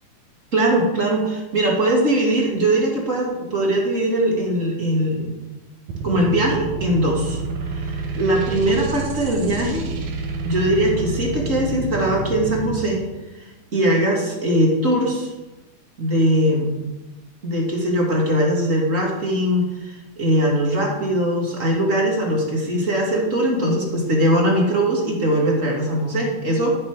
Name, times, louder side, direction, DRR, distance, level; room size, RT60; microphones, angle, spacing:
voice 1, 0.5-5.4 6.0-7.4 7.7-9.8 10.4-13.0 13.7-15.3 16.0-16.8 17.4-26.8, right 1 dB, 30° right, -1 dB, 1.9 m, -21 dB
sound 1, 5.9-12.7, right 3 dB, 75° right, 2.7 m, -28 dB
13.5 x 6.1 x 5.0 m, 1.1 s
omnidirectional pair, 3.6 m